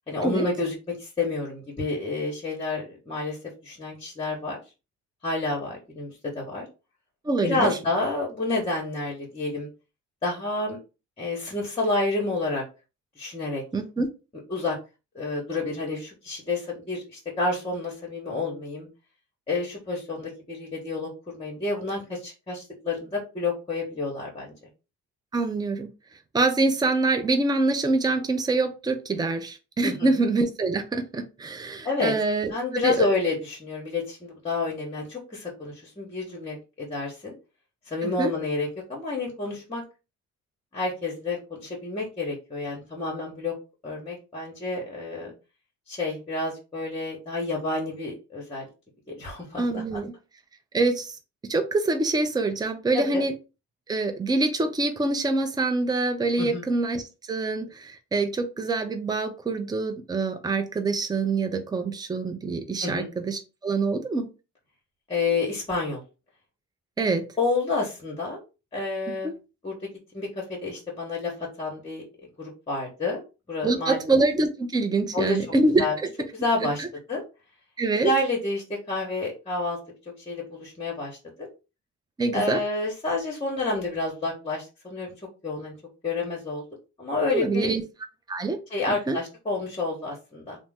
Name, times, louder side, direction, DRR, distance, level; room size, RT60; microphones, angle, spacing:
voice 1, 0.1-3.4 3.6-4.6 5.2-6.7 7.4-9.7 10.2-10.8 11.2-12.6 13.2-13.6 14.5-14.8 15.1-18.9 19.5-24.5 29.8-30.1 31.8-32.1 32.5-37.3 37.9-39.8 40.7-43.5 43.8-45.3 45.9-48.7 49.1-50.0 52.9-53.2 56.4-56.6 62.8-63.1 65.1-66.0 67.4-68.4 68.7-69.3 69.6-69.8 70.1-72.0 72.4-73.2 73.5-74.0 75.1-75.4 75.8-75.9 76.3-77.2 77.9-79.8 80.2-81.5 82.3-85.1 85.4-85.7 86.0-86.6 87.0-87.7 88.7-90.6, left 3 dB, 20° left, -1 dB, 0.9 m, -29 dB
voice 2, 7.2-7.7 13.7-14.1 25.3-25.9 26.3-33.1 38.0-38.3 49.6-50.1 50.7-51.2 51.4-53.3 53.9-57.0 57.3-64.3 67.0-67.2 69.2-69.3 73.6-76.1 76.8-76.9 77.8-78.1 82.2-82.6 87.3-87.8 88.3-88.6 89.1-89.2, right 3 dB, 15° right, 7 dB, 0.5 m, -25 dB
2.8 x 2.1 x 3.4 m, 0.30 s
cardioid pair, 90°, 30 cm